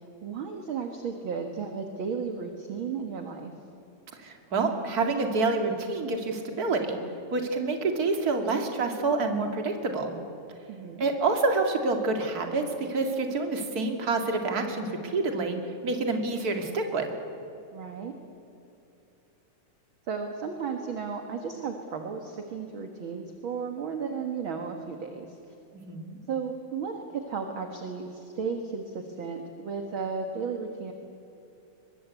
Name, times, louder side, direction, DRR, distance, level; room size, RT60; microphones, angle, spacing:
voice 1, 0.2-3.5 10.7-11.1 17.7-18.1 20.1-25.4 26.3-30.9, right 5 dB, 50° right, 4 dB, 2.1 m, -34 dB
voice 2, 4.2-7.0 7.3-10.1 11.0-12.6 12.9-15.6 15.8-17.1 25.8-26.2, right 3 dB, 35° right, 4 dB, 2.4 m, -27 dB
23.0 x 22.0 x 8.3 m, 2.8 s
omnidirectional pair, 3.4 m